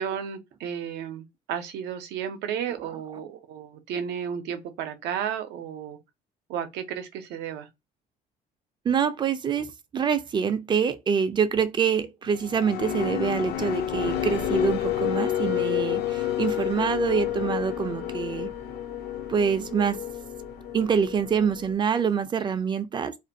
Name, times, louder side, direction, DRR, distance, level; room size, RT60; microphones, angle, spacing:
voice 1, 0.0-6.0 6.5-7.7, right 8 dB, 85° right, 0.5 m, -33 dB
voice 2, 8.8-18.5 19.3-20.0 20.7-23.2, right 7 dB, 25° right, 0.3 m, -26 dB
sound 1, 12.3-20.9, left 10 dB, 65° left, 0.4 m, -33 dB
sound 2, 13.3-21.7, left 13 dB, 85° left, 0.8 m, -31 dB
2.4 x 2.2 x 2.6 m
cardioid pair, 110°, 17 cm